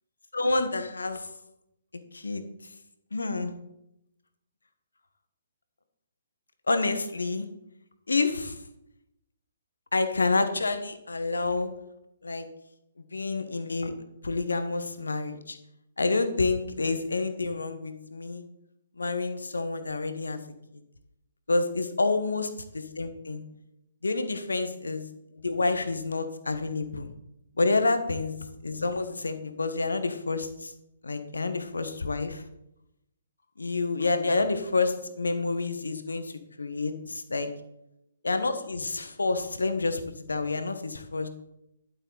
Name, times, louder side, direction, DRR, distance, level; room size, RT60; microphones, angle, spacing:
voice 1, 0.3-1.3 2.1-2.4 3.1-3.5 6.7-7.4 8.1-8.6 9.9-11.7 12.2-12.5 13.1-13.9 14.2-15.6 16.0-18.4 19.0-20.4 21.5-23.4 24.0-25.0 25.3-27.1 27.6-28.3 28.6-30.7 31.0-32.4 33.6-37.5 38.2-41.3, left 3 dB, 75° left, 9 dB, 1.3 m, -28 dB
11.5 x 8.2 x 4.1 m, 0.82 s
figure-of-eight pair, 130°, 0 cm